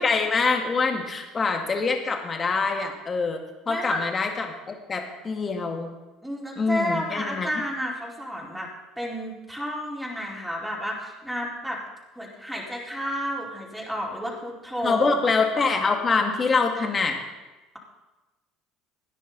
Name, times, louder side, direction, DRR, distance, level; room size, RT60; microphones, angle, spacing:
voice 1, 0.0-5.9 6.6-7.6 14.8-17.2, left 4 dB, 30° left, 3 dB, 2.2 m, -25 dB
voice 2, 3.7-4.0 6.2-8.7 9.0-11.8 12.2-15.1, equal, 5° right, -3 dB, 4.3 m, -31 dB
17.0 x 10.0 x 4.1 m, 1.1 s
hypercardioid pair, 65°, 0 cm